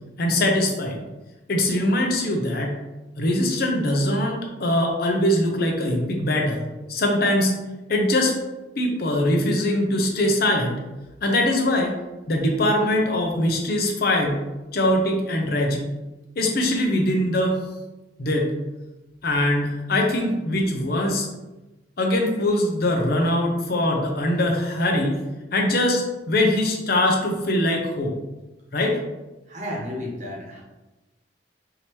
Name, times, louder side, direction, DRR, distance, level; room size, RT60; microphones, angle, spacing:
voice 1, 0.2-1.0 1.5-2.8 3.2-7.5 7.9-8.3 8.8-10.8 11.2-12.0 12.3-14.4 14.7-15.8 16.4-17.6 18.2-18.5 19.2-21.3 22.0-25.2 25.5-28.1 28.7-29.0, left 1 dB, 55° left, 1 dB, 0.7 m, -22 dB
voice 2, 29.5-30.6, left 1 dB, 40° right, -2 dB, 1.1 m, -32 dB
4.9 x 2.8 x 3.1 m, 1.1 s
head